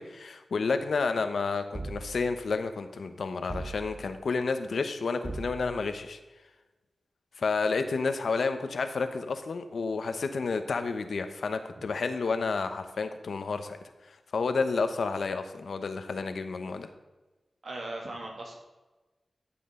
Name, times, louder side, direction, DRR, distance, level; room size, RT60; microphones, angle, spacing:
voice 1, 0.0-6.2 7.4-13.8 14.1-16.9, left 4 dB, 80° left, 9 dB, 0.9 m, -30 dB
sound 1, 1.7-2.5 3.5-4.2 5.2-6.0, right 2 dB, 30° right, 0.5 m, -40 dB
voice 2, 17.6-18.6, right 2 dB, 65° right, 0 dB, 2.5 m, -38 dB
13.5 x 7.7 x 3.8 m, 1.2 s
wide cardioid pair, 115°, 0 cm